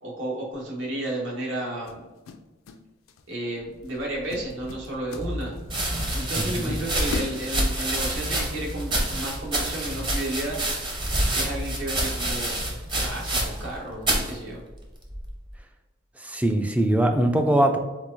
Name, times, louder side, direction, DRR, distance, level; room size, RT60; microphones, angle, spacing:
voice 1, 0.0-2.1 3.3-5.6 6.1-10.6 11.3-12.6 13.0-14.6, right 1 dB, 65° right, -3 dB, 1.3 m, -32 dB
sound 1, 0.5-0.8 1.9-2.8 3.1-3.4 3.8-4.0 4.3-5.8 6.2-6.3 6.7-8.0, left 5 dB, 80° left, 0.4 m, -39 dB
sound 2, 3.8-14.4, left 1 dB, 90° right, 1.5 m, -37 dB
sound 3, 4.6-4.7 5.6-13.7 14.0-14.3 15.1-15.5, right 1 dB, 25° right, 0.8 m, -28 dB
voice 2, 6.4-6.7 16.2-17.8, right 1 dB, 5° right, 5 dB, 0.3 m, -22 dB
4.5 x 3.9 x 2.6 m, 1.2 s
head